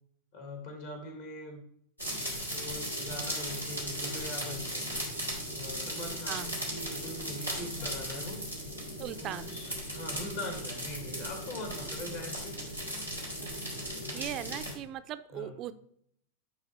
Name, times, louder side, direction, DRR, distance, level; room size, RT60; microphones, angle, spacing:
voice 1, 0.3-1.6 2.5-4.9 5.6-8.4 9.1-12.6 13.9-14.1 15.3-15.5, left 1 dB, 55° left, 3 dB, 2.2 m, -42 dB
sound 1, 2.0-14.7, equal, 85° left, 2.4 m, -37 dB
voice 2, 6.3-6.6 9.0-9.6 13.4-13.5 13.8-15.7, right 11 dB, 35° right, 12 dB, 0.4 m, -39 dB
9.8 x 3.4 x 4.6 m, 0.67 s
figure-of-eight pair, 90°, 0 cm